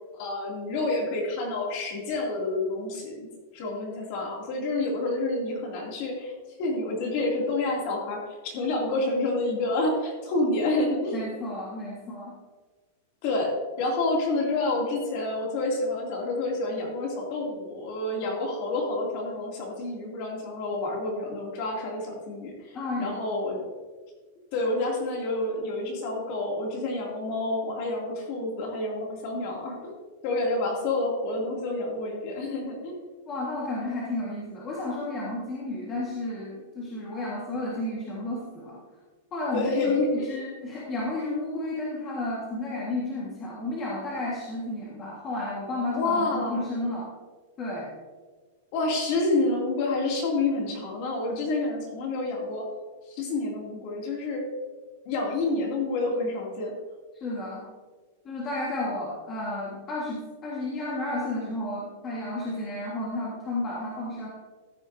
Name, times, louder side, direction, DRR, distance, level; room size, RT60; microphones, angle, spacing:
voice 1, 0.1-3.3 3.5-6.3 6.6-11.2 13.2-13.5 13.8-23.6 24.5-30.0 30.2-33.0 39.5-40.4 45.9-46.6 48.7-52.7 53.1-54.4 55.0-56.7, left 2 dB, 40° left, -1 dB, 2.6 m, -28 dB
voice 2, 11.1-12.3 22.7-23.2 33.3-38.8 39.3-47.1 47.6-47.9 57.1-57.7 58.2-64.3, left 2 dB, 20° left, -5 dB, 1.6 m, -32 dB
14.0 x 9.5 x 2.7 m, 1.4 s
supercardioid pair, 175°, 0 cm